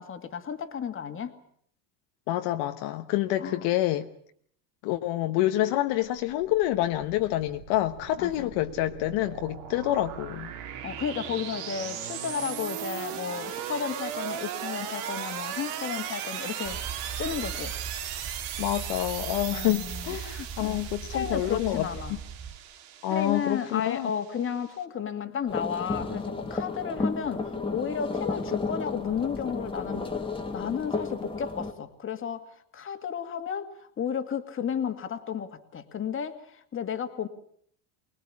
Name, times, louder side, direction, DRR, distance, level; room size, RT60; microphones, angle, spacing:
voice 1, 0.0-1.3 3.4-3.7 8.2-8.5 10.8-16.8 17.2-17.7 19.5-20.8 21.1-22.2 23.1-30.1 30.5-32.5 32.7-37.3, left 7 dB, 25° left, 2.1 m, -33 dB
voice 2, 2.3-4.1 4.8-10.5 18.6-21.9 23.0-24.1, left 14 dB, 60° left, 1.3 m, -27 dB
sound 1, 6.0-24.8, right 9 dB, 75° right, 3.2 m, -38 dB
sound 2, 16.6-22.6, right 7 dB, 15° right, 1.1 m, -40 dB
sound 3, 25.5-31.7, left 3 dB, 10° left, 1.9 m, -32 dB
24.5 x 20.0 x 8.6 m
supercardioid pair, 135°, 47 cm